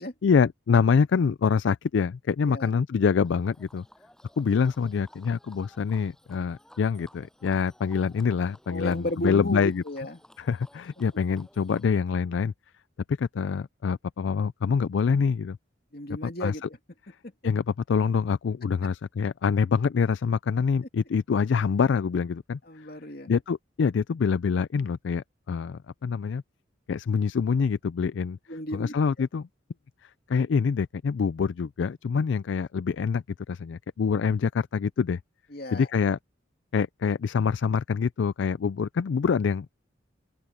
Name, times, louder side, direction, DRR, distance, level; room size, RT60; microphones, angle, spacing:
voice 1, 0.2-3.8 4.4-9.8 10.4-12.5 13.1-15.6 16.4-16.5 17.4-22.6 23.3-26.4 26.9-28.4 28.7-29.5 30.3-35.2 35.7-36.2 36.7-39.8, left 6 dB, 70° left, 0.4 m, -25 dB
Livestock farm animals working animals, 3.2-11.9, equal, 5° left, 8.0 m, -56 dB
voice 2, 8.7-10.2 15.9-16.8 22.7-23.3 28.5-28.9 35.5-35.9, equal, 50° left, 2.6 m, -34 dB
open air
head